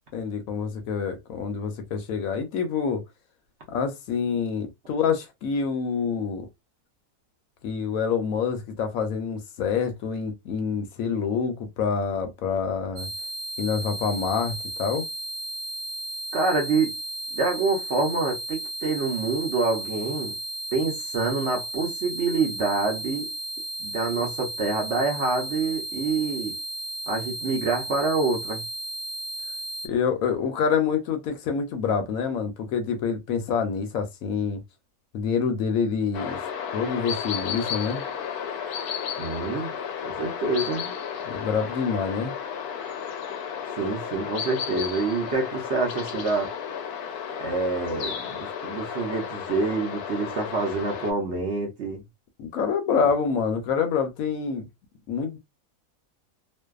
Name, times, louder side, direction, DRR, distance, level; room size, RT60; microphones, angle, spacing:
voice 1, 0.1-3.0 3.7-6.5 7.6-13.1 13.6-15.0 29.8-34.6 35.1-36.4 36.7-38.0 41.2-42.3 52.4-54.7 55.1-55.4, left 6 dB, 70° left, 0.9 m, -27 dB
sound 1, 13.0-29.9, right 1 dB, 85° right, 1.1 m, -34 dB
voice 2, 16.3-16.9 17.3-20.3 20.7-23.3 23.8-26.5 27.1-28.6 39.2-39.7 40.0-40.9 43.8-46.5 47.4-52.0, right 3 dB, 60° right, 0.8 m, -26 dB
sound 2, 36.1-51.1, left 7 dB, 90° left, 1.1 m, -33 dB
2.6 x 2.1 x 2.3 m
omnidirectional pair, 1.6 m